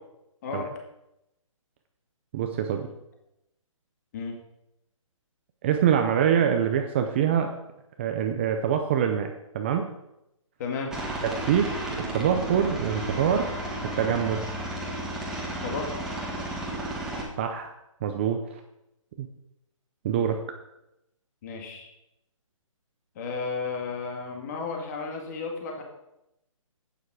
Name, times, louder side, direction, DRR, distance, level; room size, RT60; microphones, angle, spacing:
voice 1, 2.3-2.9 5.6-7.6 8.0-9.8 11.4-11.8 12.1-13.5 14.0-14.4 17.4-17.7 18.0-18.4 19.2-19.3 20.0-20.4, right 8 dB, 20° right, 5 dB, 0.6 m, -24 dB
voice 2, 10.6-10.9 15.6-15.9 21.4-21.9 23.2-25.8, left 4 dB, 30° left, 2 dB, 2.1 m, -33 dB
Aircraft, 10.9-17.2, right 1 dB, 5° right, 1.6 m, -33 dB
11.5 x 9.1 x 4.8 m, 0.87 s
hypercardioid pair, 160°, 17 cm